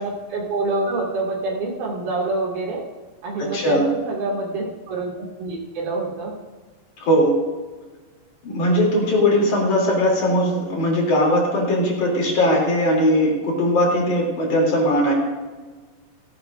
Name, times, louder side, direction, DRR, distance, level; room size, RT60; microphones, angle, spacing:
voice 1, 0.0-2.8 3.2-5.1 5.4-6.3, right 2 dB, 65° right, -2 dB, 4.0 m, -26 dB
voice 2, 3.4-3.9 7.0-7.4 8.4-15.1, equal, 50° left, -2 dB, 4.4 m, -19 dB
17.0 x 16.0 x 2.6 m, 1.3 s
omnidirectional pair, 4.6 m